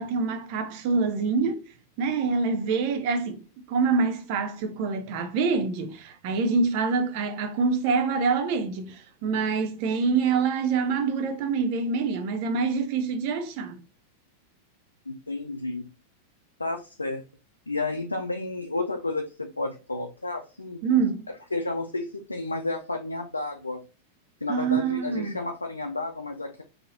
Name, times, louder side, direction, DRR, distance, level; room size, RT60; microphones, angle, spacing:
voice 1, 0.0-1.6 2.0-3.4 3.7-13.8 20.8-21.2 24.5-25.4, right 5 dB, 50° right, 0.7 m, -26 dB
voice 2, 15.1-15.9 16.6-17.2 17.7-20.8 21.5-23.8 24.4-26.6, left 2 dB, 85° left, 0.4 m, -31 dB
3.8 x 2.8 x 2.6 m
figure-of-eight pair, 95°, 0 cm